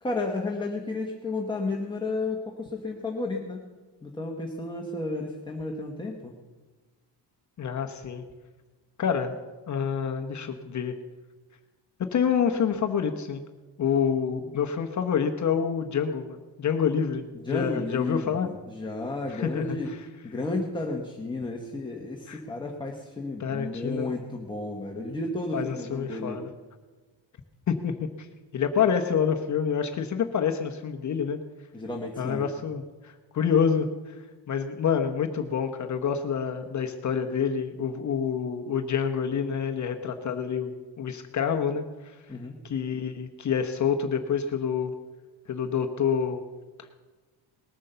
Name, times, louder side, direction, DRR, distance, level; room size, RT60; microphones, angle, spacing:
voice 1, 0.0-3.7 4.0-6.3 17.3-19.9 20.2-26.4 31.7-32.5 42.3-42.5, left 2 dB, 10° left, 1 dB, 1.1 m, -32 dB
voice 2, 7.6-8.2 9.0-9.4 9.7-11.0 12.0-13.4 13.8-18.5 19.3-20.0 22.3-22.4 23.4-24.1 25.5-26.5 27.7-28.3 28.5-31.4 32.2-42.2 42.6-44.9 45.5-46.4 46.8-46.9, left 7 dB, 40° left, 5 dB, 0.9 m, -27 dB
19.5 x 9.7 x 6.7 m, 1.3 s
cardioid pair, 160°, 45 cm